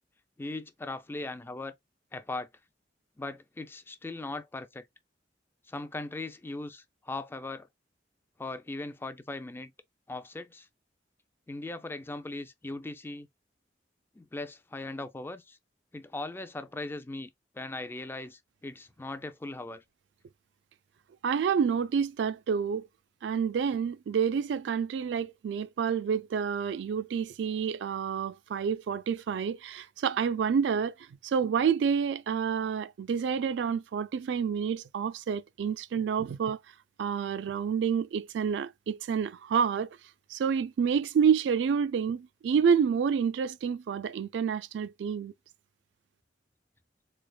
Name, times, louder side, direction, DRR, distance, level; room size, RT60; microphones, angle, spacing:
voice 1, 0.4-1.7 2.1-2.5 3.2-4.9 5.7-7.7 8.4-9.7 10.1-10.7 11.5-13.3 14.2-15.6 15.9-17.3 17.5-19.8, left 2 dB, 15° left, 0.3 m, -39 dB
voice 2, 21.2-22.9 23.2-30.9 31.2-36.6 37.0-39.9 40.3-45.3, right 7 dB, 75° right, 0.3 m, -28 dB
3.9 x 3.3 x 2.2 m
head